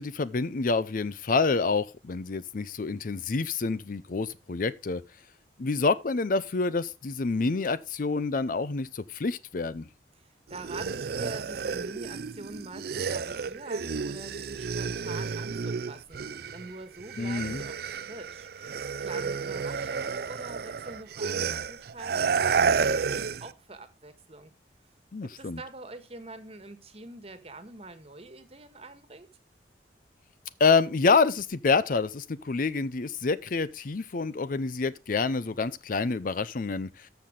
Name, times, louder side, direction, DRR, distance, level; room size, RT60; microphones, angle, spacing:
voice 1, 0.0-5.0 5.6-9.9 17.2-17.6 25.1-25.6 30.6-37.1, left 4 dB, 50° left, 0.5 m, -27 dB
voice 2, 10.1-22.1 22.4-24.5 25.4-29.3, right 2 dB, 35° right, 1.4 m, -45 dB
sound 1, 10.5-16.7 17.0-23.5, right 5 dB, 60° right, 0.4 m, -31 dB
13.5 x 6.0 x 3.8 m
head